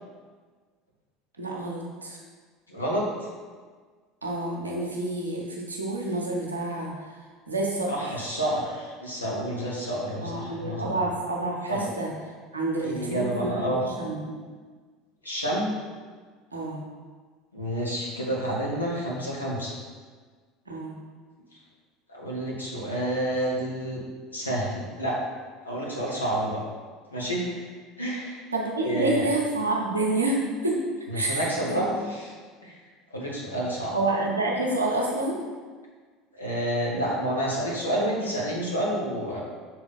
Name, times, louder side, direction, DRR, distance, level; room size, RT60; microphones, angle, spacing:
voice 1, 1.4-2.2 4.2-7.1 7.5-8.2 10.2-12.1 12.5-14.4 16.5-16.8 20.7-21.0 28.5-30.8 31.1-31.9 33.9-35.4, right 2 dB, 85° right, -2 dB, 1.0 m, -28 dB
voice 2, 2.7-3.3 7.9-11.0 11.7-11.9 12.8-13.8 15.2-15.8 17.5-19.7 22.1-24.0 24.3-25.2 25.6-26.6 27.1-27.6 28.0-28.4 28.8-29.2 31.1-32.3 32.6-32.7 33.1-33.9 36.3-39.4, right 1 dB, 85° left, -4 dB, 1.3 m, -29 dB
6.4 x 3.9 x 4.2 m, 1.5 s
figure-of-eight pair, 70°, 0 cm